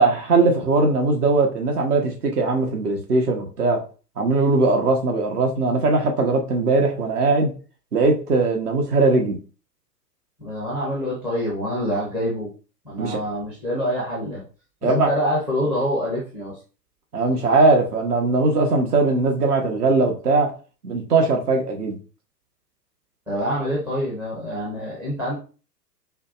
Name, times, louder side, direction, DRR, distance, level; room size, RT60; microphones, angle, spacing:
voice 1, 0.0-3.8 4.2-7.5 7.9-9.4 13.0-13.2 14.8-15.1 17.1-20.5 20.8-22.0, right 3 dB, 65° right, 1.2 m, -20 dB
voice 2, 10.4-12.5 12.8-14.4 14.8-16.6 23.3-25.4, equal, 5° right, 0.4 m, -26 dB
5.0 x 2.2 x 2.4 m
figure-of-eight pair, 105°, 50 cm